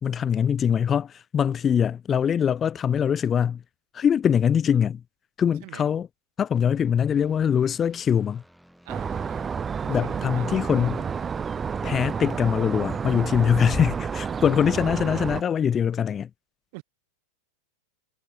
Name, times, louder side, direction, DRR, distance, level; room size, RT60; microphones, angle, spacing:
voice 1, 0.0-3.6 3.9-5.0 5.4-6.1 6.4-8.4 9.9-11.0 11.8-16.3, left 8 dB, 25° left, 0.8 m, -23 dB
sound 1, 6.5-13.0, equal, ahead, 6.2 m, -56 dB
voice 2, 8.8-9.5 9.8-11.3 16.7-16.8, right 27 dB, 45° right, 4.6 m, -45 dB
sound 2, 8.9-15.4, right 6 dB, 20° right, 0.6 m, -30 dB
figure-of-eight pair, 90°, 0 cm